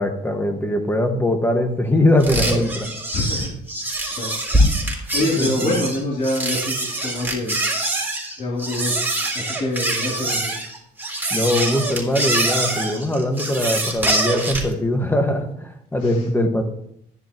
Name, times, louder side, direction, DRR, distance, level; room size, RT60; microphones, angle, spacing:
voice 1, 0.0-2.9 5.4-5.8 11.3-16.6, left 1 dB, 10° left, 5 dB, 1.8 m, -21 dB
sound 1, 2.2-14.7, right 1 dB, 10° right, 3.8 m, -24 dB
voice 2, 3.1-3.5 4.1-4.3 4.8-6.7 7.0-7.6 8.4-9.0 9.3-10.5 16.0-16.3, left 1 dB, 45° left, -4 dB, 3.5 m, -25 dB
14.5 x 10.5 x 3.1 m, 0.75 s
cardioid pair, 110°, 17 cm